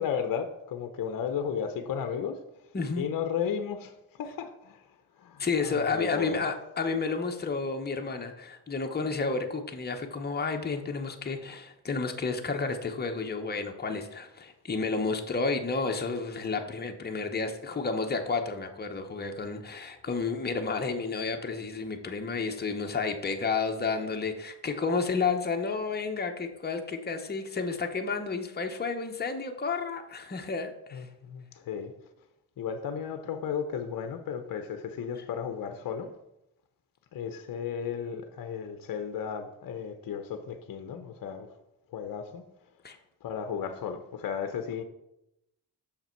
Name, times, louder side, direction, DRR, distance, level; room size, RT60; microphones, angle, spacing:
voice 1, 0.0-2.4 3.0-4.8 5.2-6.4 30.9-31.9 32.6-36.1 37.1-41.5 41.9-42.4 43.2-44.8, left 7 dB, 55° left, 8 dB, 0.7 m, -34 dB
voice 2, 2.7-3.0 5.4-31.0 42.8-43.0, left 4 dB, 25° left, 4 dB, 0.9 m, -31 dB
6.7 x 5.6 x 4.5 m, 0.89 s
cardioid pair, 85°, 41 cm